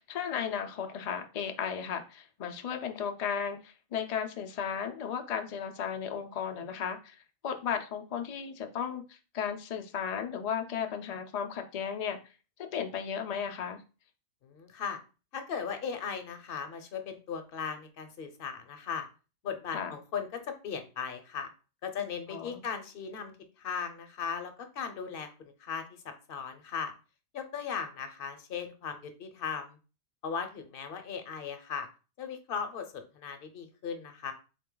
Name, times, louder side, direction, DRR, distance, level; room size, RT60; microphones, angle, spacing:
voice 1, 0.0-7.2 7.4-9.0 9.3-12.2 12.7-13.8 19.7-19.9 22.3-22.6, left 7 dB, 75° left, 0.3 m, -35 dB
voice 2, 14.4-15.0 15.3-19.1 19.4-21.5 21.8-26.9 27.3-29.8 30.2-31.9 32.2-34.3, left 6 dB, 55° left, 0.7 m, -37 dB
3.7 x 2.8 x 3.7 m
omnidirectional pair, 1.3 m